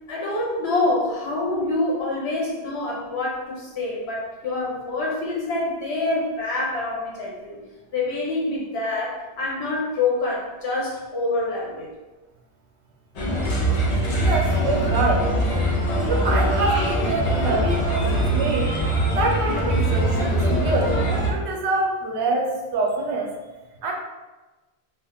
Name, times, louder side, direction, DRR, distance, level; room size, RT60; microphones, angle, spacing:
voice 1, 0.1-7.6 7.9-11.9, left 2 dB, 85° left, -3 dB, 0.9 m, -26 dB
Bird, 13.1-21.3, right 1 dB, 45° left, 0.6 m, -22 dB
voice 2, 14.2-15.3 16.1-18.7 19.1-20.9 21.3-23.3 23.8-23.9, right 2 dB, 85° right, 0 dB, 0.9 m, -25 dB
2.4 x 2.2 x 3.5 m, 1.1 s
omnidirectional pair, 1.1 m